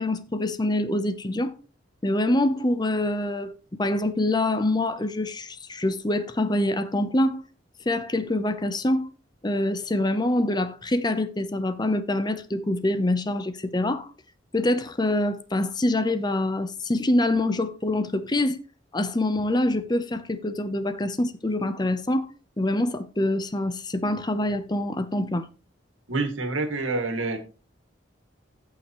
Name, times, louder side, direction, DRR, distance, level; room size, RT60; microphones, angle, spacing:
voice 1, 0.0-1.6 2.0-3.5 3.8-7.4 7.9-9.1 9.4-14.1 14.5-18.6 18.9-22.3 22.6-25.5, left 1 dB, 20° left, 0.7 m, -25 dB
voice 2, 26.1-27.4, right 3 dB, 90° right, 2.1 m, -27 dB
16.0 x 5.7 x 3.0 m
head